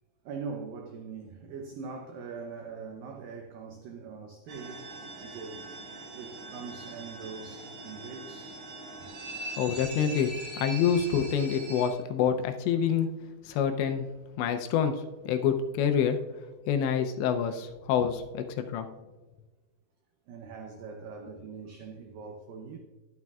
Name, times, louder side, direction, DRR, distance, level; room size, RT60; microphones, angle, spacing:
voice 1, 0.2-4.9 5.2-5.6 6.1-8.6 9.0-9.1 20.3-22.8, right 5 dB, 90° right, 1.9 m, -42 dB
sound 1, 4.5-11.9, right 2 dB, 45° right, 2.5 m, -42 dB
voice 2, 9.6-13.1 13.4-14.1 14.4-16.2 16.7-18.9, left 8 dB, 85° left, 2.9 m, -27 dB
12.0 x 11.0 x 2.4 m
omnidirectional pair, 5.1 m